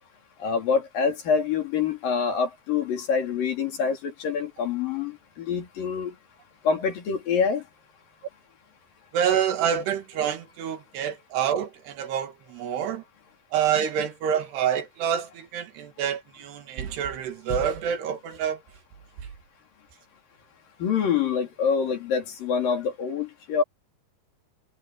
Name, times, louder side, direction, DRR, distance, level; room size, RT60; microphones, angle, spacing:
voice 1, 0.4-6.1 6.6-7.6 20.8-23.6, left 6 dB, 60° left, 4.7 m, -26 dB
voice 2, 9.1-13.0 13.5-18.6, right 8 dB, 85° right, 4.1 m, -27 dB
omnidirectional pair, 4.6 m